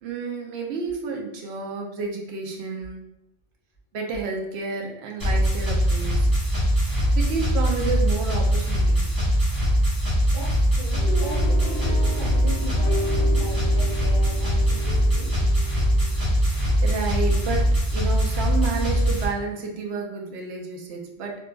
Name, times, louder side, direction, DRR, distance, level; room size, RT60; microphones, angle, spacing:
voice 1, 0.0-3.0 3.9-6.3 7.2-9.1 16.8-21.4, right 4 dB, 75° right, 1 dB, 0.8 m, -30 dB
sound 1, 5.2-19.2, equal, 20° right, 0.9 m, -22 dB
voice 2, 10.3-15.3, left 1 dB, 25° left, -8 dB, 1.5 m, -38 dB
sound 2, 11.0-17.2, equal, 60° left, 0.7 m, -34 dB
3.6 x 2.4 x 2.3 m, 0.84 s
omnidirectional pair, 1.1 m